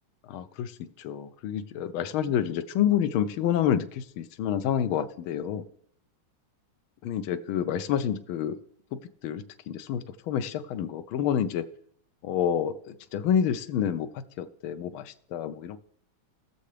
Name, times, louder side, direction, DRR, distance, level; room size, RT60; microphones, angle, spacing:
voice 1, 0.3-5.6 7.0-8.6 8.9-11.6 12.2-15.8, left 9 dB, 85° left, 10 dB, 1.5 m, -28 dB
19.0 x 6.7 x 3.3 m, 0.67 s
omnidirectional pair, 2.2 m